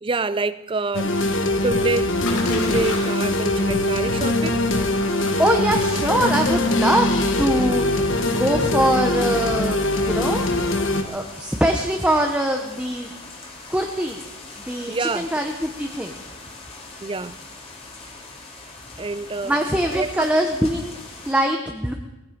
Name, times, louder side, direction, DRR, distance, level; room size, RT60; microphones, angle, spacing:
voice 1, 0.0-4.6 14.9-15.3 17.0-17.4 19.0-19.6 19.9-20.3, right 3 dB, 25° right, 0.4 m, -27 dB
sound 1, 0.9-11.0, left 2 dB, 55° left, 1.4 m, -22 dB
Splash splatter, 1.6-11.4, left 3 dB, 85° left, 4.0 m, -39 dB
sound 2, 2.2-21.3, left 3 dB, 25° left, 2.7 m, -41 dB
voice 2, 5.4-7.8 8.3-10.5 11.1-13.1 13.7-14.2 14.7-16.2 19.4-20.9 21.3-21.9, right 1 dB, 5° right, 0.8 m, -22 dB
18.5 x 15.0 x 5.1 m
head